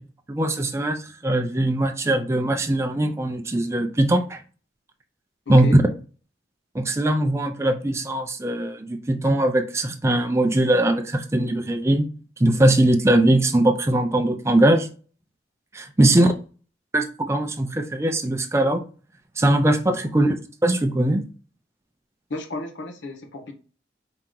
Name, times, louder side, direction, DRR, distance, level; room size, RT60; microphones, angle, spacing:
voice 1, 0.3-4.4 5.5-5.8 6.7-12.1 12.4-14.9 15.7-16.3 16.9-18.8 19.4-20.3 20.6-21.2, right 1 dB, 15° right, 0.4 m, -20 dB
voice 2, 5.5-5.8 16.0-16.3 20.0-20.1 22.3-23.5, left 2 dB, 80° left, 0.8 m, -33 dB
4.8 x 2.8 x 3.8 m
head